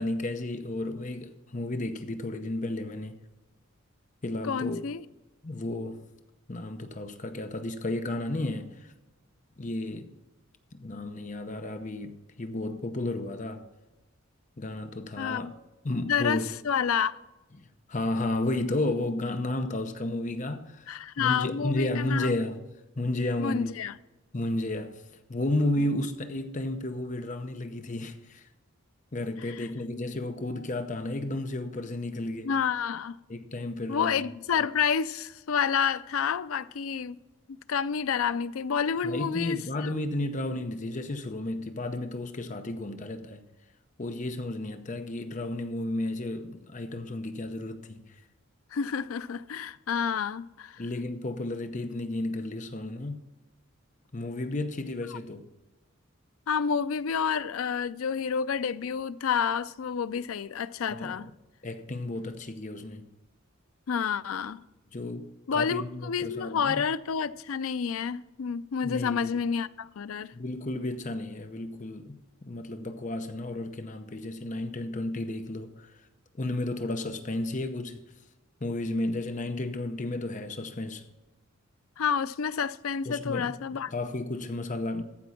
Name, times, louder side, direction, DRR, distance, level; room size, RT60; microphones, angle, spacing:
voice 1, 0.0-3.2 4.2-4.8 5.4-6.0 6.5-8.9 9.6-10.1 10.7-13.7 14.6-15.5 15.8-16.4 17.9-20.9 21.2-22.6 23.0-23.8 24.3-25.0 25.3-28.5 29.1-32.5 33.3-34.2 39.0-43.4 44.0-48.2 50.8-53.3 54.1-55.5 60.9-61.3 61.6-63.1 64.9-66.8 68.8-69.3 70.3-76.0 76.4-78.0 78.6-81.1 83.1-83.6 83.9-85.0, left 2 dB, 35° left, 0.7 m, -32 dB
voice 2, 4.4-5.0 15.2-15.5 16.1-17.2 20.9-22.3 23.4-23.9 29.5-29.7 32.4-33.2 33.9-37.2 37.7-39.9 48.7-50.8 55.1-55.2 56.5-61.3 63.9-64.6 65.5-70.3 82.0-83.9, left 7 dB, 85° left, 0.5 m, -29 dB
14.5 x 5.3 x 5.8 m
head